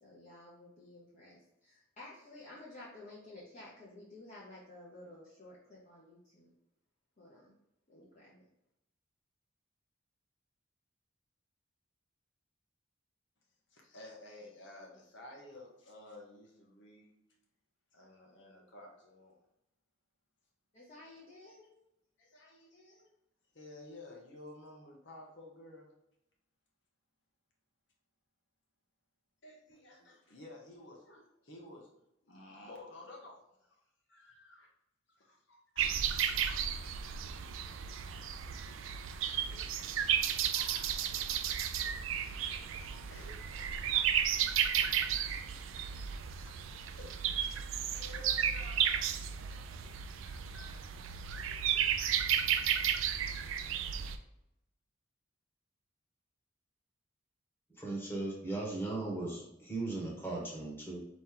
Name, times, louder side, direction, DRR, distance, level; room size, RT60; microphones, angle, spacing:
voice 1, 0.0-6.5 7.2-7.6 7.9-8.4 20.7-21.7 30.0-30.1, left 2 dB, 40° left, -7 dB, 0.9 m, -53 dB
voice 2, 13.7-17.1 17.9-19.4 22.2-23.1 23.5-25.9 29.4-31.9 32.2-34.7 35.1-37.7 38.0-38.2 39.3-41.4 42.1-42.2 43.1-44.9 45.3-46.5 47.0-47.6 47.9-49.6 49.8-49.9 50.2-51.1 51.5-51.8 52.4-52.6 53.2-53.7, left 2 dB, 65° left, -1 dB, 0.9 m, -54 dB
sound 1, 35.8-54.2, right 9 dB, 85° right, 0.4 m, -33 dB
voice 3, 57.7-61.0, right 2 dB, 10° left, -4 dB, 1.2 m, -37 dB
4.2 x 3.1 x 3.8 m, 0.84 s
head